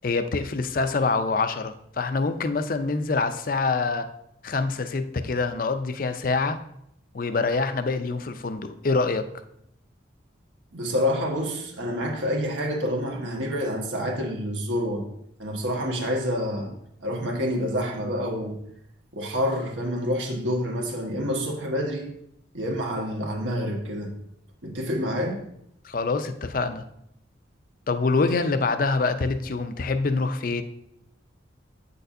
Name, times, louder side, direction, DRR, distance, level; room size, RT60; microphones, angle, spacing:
voice 1, 0.0-4.1 4.4-6.6 7.1-9.3 25.8-26.8 27.9-30.6, left 3 dB, 45° left, 9 dB, 0.4 m, -25 dB
voice 2, 10.7-15.0 15.4-16.7 17.0-18.6 19.1-22.1 22.5-24.1 24.6-25.4, equal, 80° right, 0 dB, 1.4 m, -28 dB
8.5 x 6.6 x 2.6 m, 0.75 s
head